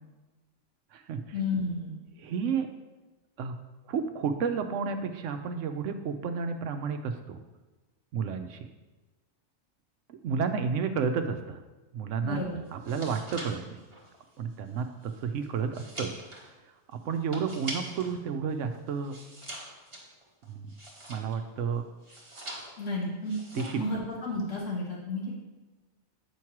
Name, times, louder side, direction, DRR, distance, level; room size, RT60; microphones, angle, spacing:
voice 1, 1.3-2.0 12.2-12.6 22.8-23.3 23.7-25.4, left 2 dB, 75° left, -5 dB, 1.7 m, -32 dB
voice 2, 2.2-2.7 3.4-3.6 3.9-7.4 8.1-8.7 10.1-11.6 11.9-12.4 12.7-13.8 14.4-16.1 17.0-19.2 20.5-20.7 21.1-21.8 23.5-23.8, right 6 dB, 80° right, 8 dB, 1.0 m, -31 dB
sound 1, 12.7-18.2 18.5-21.5 22.0-22.9 23.2-23.9 24.2-24.6, right 1 dB, 25° right, 1.4 m, -43 dB
8.5 x 3.1 x 5.8 m, 1.2 s
omnidirectional pair, 1.3 m